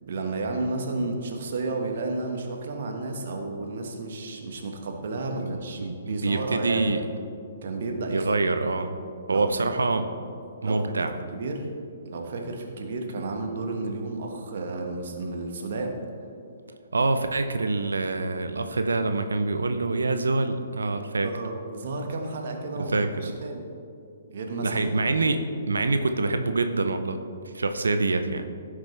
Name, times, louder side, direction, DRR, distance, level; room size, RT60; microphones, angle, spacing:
voice 1, 0.0-6.9 7.6-8.5 9.3-9.7 10.6-11.7 12.0-16.0 21.0-22.9 23.2-23.6 24.3-25.4, right 2 dB, 55° right, 2 dB, 1.4 m, -32 dB
voice 2, 5.4-7.0 8.1-9.0 9.3-10.0 10.6-11.2 16.9-21.3 22.9-23.4 24.6-25.4 25.7-27.2 27.5-28.5, right 3 dB, 75° right, 8 dB, 0.6 m, -25 dB
15.5 x 6.1 x 3.3 m, 2.4 s
figure-of-eight pair, 125°, 0 cm